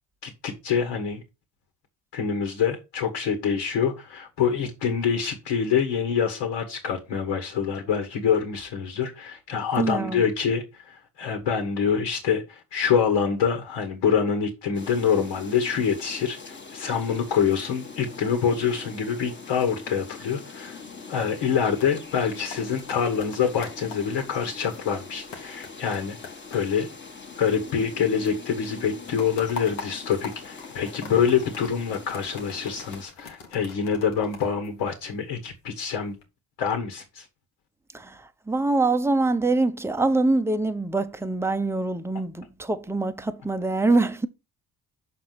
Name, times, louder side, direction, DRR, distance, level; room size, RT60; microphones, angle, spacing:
voice 1, 0.2-1.2 2.1-20.8 21.1-26.2 26.5-26.9 27.4-36.1 36.6-37.3, left 7 dB, 65° left, 1.5 m, -26 dB
voice 2, 9.8-10.2 37.9-44.3, right 2 dB, 5° right, 0.7 m, -24 dB
sound 1, 14.7-33.0, left 4 dB, 25° left, 1.3 m, -43 dB
sound 2, 21.7-28.0 28.2-35.4 35.9-36.2, left 5 dB, 85° left, 1.3 m, -44 dB
6.0 x 4.3 x 5.7 m
hypercardioid pair, 50°, 46 cm